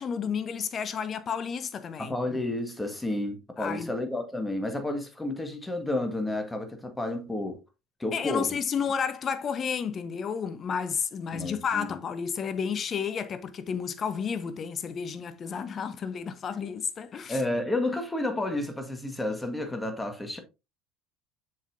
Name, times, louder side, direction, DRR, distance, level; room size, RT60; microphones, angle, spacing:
voice 1, 0.0-2.1 3.6-3.9 8.1-17.4, left 6 dB, 40° left, 0.8 m, -31 dB
voice 2, 2.0-7.6 8.0-8.6 11.3-12.0 17.3-20.4, left 2 dB, 10° left, 1.8 m, -31 dB
7.2 x 5.6 x 2.7 m
hypercardioid pair, 70°, 0 cm